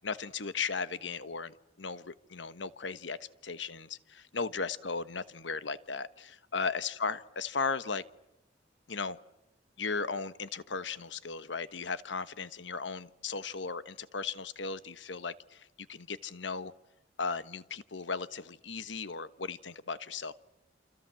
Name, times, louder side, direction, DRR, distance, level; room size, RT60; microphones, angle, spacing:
voice 1, 0.0-3.2 3.4-8.0 8.9-9.2 9.8-16.7 17.2-20.3, left 4 dB, 70° left, 14 dB, 1.2 m, -36 dB
28.5 x 27.0 x 7.6 m, 0.94 s
head